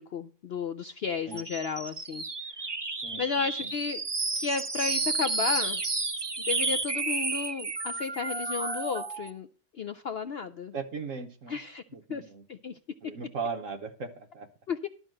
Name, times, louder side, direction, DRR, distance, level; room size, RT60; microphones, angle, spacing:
voice 1, 0.0-2.2 3.2-4.0 4.4-5.8 6.5-9.5 9.8-10.7 11.5-11.8 12.1-12.8 14.7-14.9, left 5 dB, 70° left, 10 dB, 0.6 m, -33 dB
sound 1, 1.3-9.3, right 3 dB, 25° right, 0.5 m, -31 dB
voice 2, 3.0-3.7 10.7-11.6 11.9-12.4 13.0-14.5, right 5 dB, 55° right, 7 dB, 1.3 m, -38 dB
12.5 x 4.6 x 7.6 m, 0.38 s
omnidirectional pair, 1.7 m